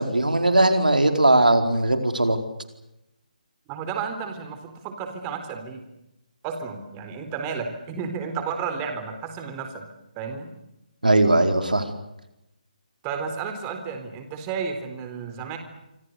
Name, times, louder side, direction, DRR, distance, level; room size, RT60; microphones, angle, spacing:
voice 1, 0.0-2.4 11.0-11.8, right 2 dB, 85° right, 7 dB, 4.6 m, -19 dB
voice 2, 3.7-5.8 6.4-9.8 10.2-10.5 13.0-15.6, right 6 dB, 20° right, 7 dB, 4.0 m, -32 dB
27.0 x 26.5 x 6.8 m, 0.88 s
figure-of-eight pair, 145°, 4 cm